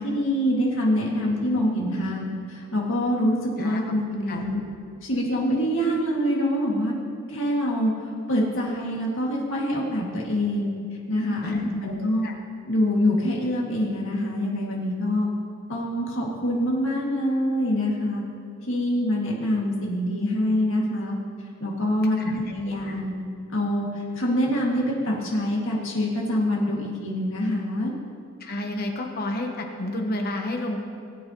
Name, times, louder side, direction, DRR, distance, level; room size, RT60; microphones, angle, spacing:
voice 1, 0.0-4.6 5.0-6.9 7.3-10.7 11.1-12.2 12.7-15.3 15.7-18.2 18.6-21.2 21.6-23.2 23.5-23.9 24.1-27.9, equal, 65° left, -3 dB, 2.0 m, -25 dB
voice 2, 11.4-12.3 22.2-22.5 22.9-23.0 28.4-30.8, left 1 dB, 50° left, 3 dB, 1.0 m, -31 dB
19.5 x 8.5 x 3.0 m, 2.3 s
head